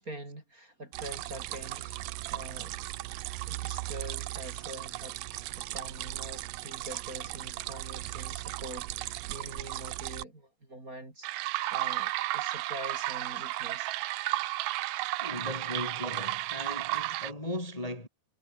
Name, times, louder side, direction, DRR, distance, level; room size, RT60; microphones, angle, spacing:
voice 1, 0.0-2.0 2.3-2.7 3.5-5.2 5.6-13.9, right 1 dB, 20° right, 5.3 m, -45 dB
sound 1, 0.9-10.2 11.2-17.3, right 18 dB, 75° right, 2.2 m, -35 dB
voice 2, 15.2-18.1, left 1 dB, 10° left, 4.0 m, -37 dB
omnidirectional pair, 4.1 m